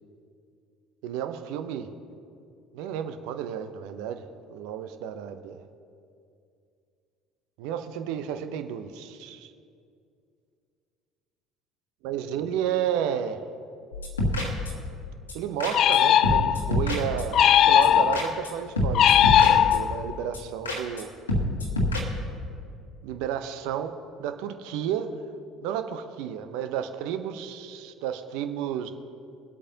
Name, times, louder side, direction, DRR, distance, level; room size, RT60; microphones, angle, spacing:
voice 1, 1.0-1.9 2.7-5.6 7.6-9.5 12.0-13.4 15.3-21.1 23.0-25.1 25.6-28.9, right 9 dB, 65° right, 9 dB, 0.7 m, -32 dB
sound 1, 13.9-15.0 15.3-15.4 15.6-16.0 16.2-17.5 17.8-17.9 18.1-18.5 18.8-20.0 20.3-20.4 20.7-21.0 21.3-22.0, left 1 dB, 90° left, 1.5 m, -27 dB
sound 2, 15.7-16.8 17.3-18.4 18.9-20.1, left 10 dB, 55° left, 0.3 m, -19 dB
22.0 x 8.4 x 2.8 m, 2.4 s
figure-of-eight pair, 60°, 0 cm